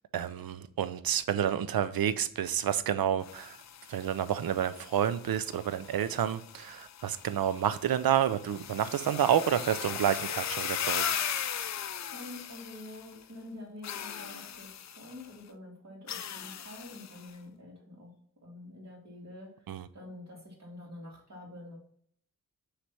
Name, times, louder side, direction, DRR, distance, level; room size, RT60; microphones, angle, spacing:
voice 1, 0.1-3.6 3.9-11.2 19.7-19.9, right 9 dB, 80° right, 0.5 m, -29 dB
sound 1, 3.2-13.2 13.8-15.3 16.1-17.3, left 8 dB, 50° left, 0.4 m, -38 dB
voice 2, 12.1-18.1 18.4-19.7 19.9-21.8, left 2 dB, 50° right, 2.4 m, -47 dB
6.0 x 3.3 x 5.7 m
wide cardioid pair, 115°, 35 cm